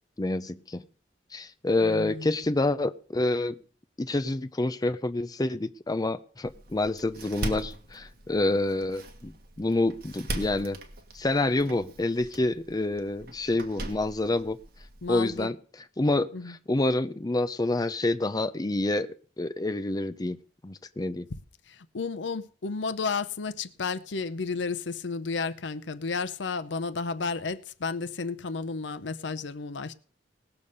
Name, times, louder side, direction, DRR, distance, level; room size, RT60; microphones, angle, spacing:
voice 1, 0.2-0.8 1.3-3.6 4.0-9.3 9.6-10.8 11.1-14.6 15.1-15.6 16.0-19.1 19.4-20.4 20.6-21.3, left 2 dB, 20° left, 0.5 m, -27 dB
voice 2, 1.8-2.3 15.0-15.5 16.3-16.5 21.7-29.9, left 4 dB, 80° left, 0.7 m, -32 dB
Door, 6.4-15.4, right 1 dB, 55° right, 1.7 m, -40 dB
19.0 x 6.9 x 5.4 m
head